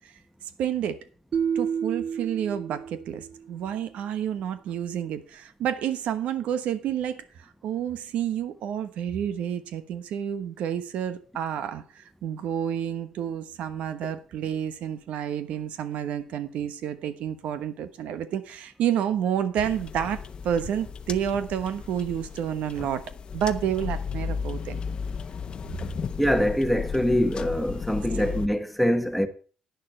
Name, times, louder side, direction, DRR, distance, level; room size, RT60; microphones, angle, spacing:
voice 1, 0.6-1.0 1.5-23.0 23.3-24.8 28.2-28.4, right 9 dB, 80° right, 1.1 m, -29 dB
sound 1, 1.3-3.5, right 7 dB, 50° right, 0.6 m, -30 dB
sound 2, 19.6-28.5, left 6 dB, 45° left, 0.9 m, -35 dB
voice 2, 26.2-29.3, equal, ahead, 1.1 m, -24 dB
10.5 x 9.4 x 4.4 m
cardioid pair, 110°, 2 cm